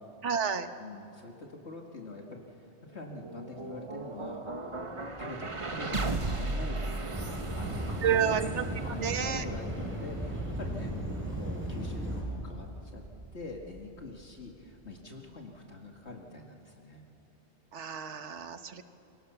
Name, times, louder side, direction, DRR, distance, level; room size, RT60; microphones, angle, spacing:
voice 1, 0.2-0.7 8.0-8.6 9.0-9.4 17.7-18.8, right 8 dB, 75° right, 9 dB, 1.4 m, -30 dB
voice 2, 0.8-13.0 13.3-17.0, left 2 dB, 65° left, 1 dB, 2.3 m, -44 dB
sound 1, 3.0-15.0, right 2 dB, 30° right, 1.2 m, -38 dB
sound 2, 7.1-12.2, equal, 10° right, 6.0 m, -36 dB
28.0 x 24.5 x 6.9 m, 2.9 s
omnidirectional pair, 1.2 m